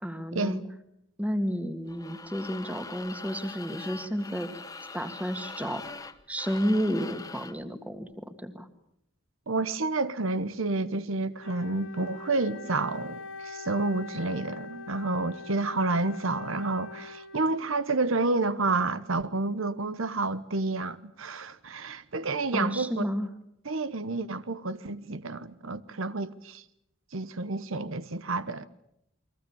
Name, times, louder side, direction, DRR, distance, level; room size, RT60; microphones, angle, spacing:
voice 1, 0.0-0.6 1.2-4.6 4.9-6.0 6.3-8.7 22.5-23.3, equal, 5° right, 1.9 m, -31 dB
sound 1, 1.9-7.6, left 4 dB, 15° left, 1.1 m, -43 dB
voice 2, 9.5-23.0 23.6-26.6 27.1-28.6, right 3 dB, 75° right, 1.0 m, -29 dB
Wind instrument woodwind instrument, 11.4-17.8, left 4 dB, 65° left, 1.6 m, -43 dB
29.5 x 22.5 x 7.1 m
head